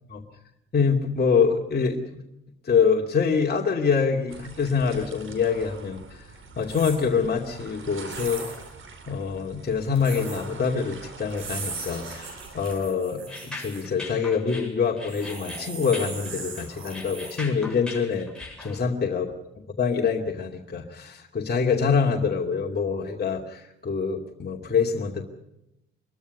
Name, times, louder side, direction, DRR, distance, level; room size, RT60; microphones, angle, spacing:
voice 1, 0.7-2.2 2.6-6.0 6.6-8.4 9.1-18.3 18.6-19.3 19.8-25.2, left 5 dB, 35° left, 0 dB, 2.6 m, -25 dB
sound 1, 4.3-12.8, right 4 dB, 45° right, 4.6 m, -44 dB
sound 2, 6.6-7.0 8.1-8.7 10.0-10.4 11.3-13.8 15.1-17.3, right 4 dB, 85° right, 5.6 m, -38 dB
sound 3, 13.3-18.8, left 2 dB, 5° left, 7.6 m, -40 dB
25.5 x 22.5 x 5.4 m, 0.87 s
figure-of-eight pair, 45°, 30 cm